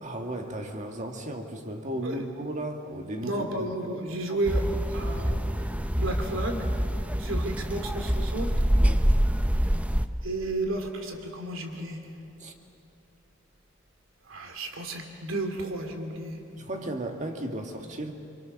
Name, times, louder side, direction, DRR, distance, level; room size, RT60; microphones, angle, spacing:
voice 1, 0.0-3.7 4.3-4.4 8.8-9.1 12.4-12.5 16.6-18.1, right 1 dB, 35° right, 4 dB, 1.9 m, -35 dB
voice 2, 3.2-5.4 5.9-6.7 7.2-8.5 10.2-12.0 14.3-16.4, right 2 dB, 75° right, 4 dB, 2.8 m, -32 dB
sound 1, 4.5-10.1, equal, 5° right, 0.6 m, -26 dB
26.5 x 24.0 x 6.5 m, 2.8 s
head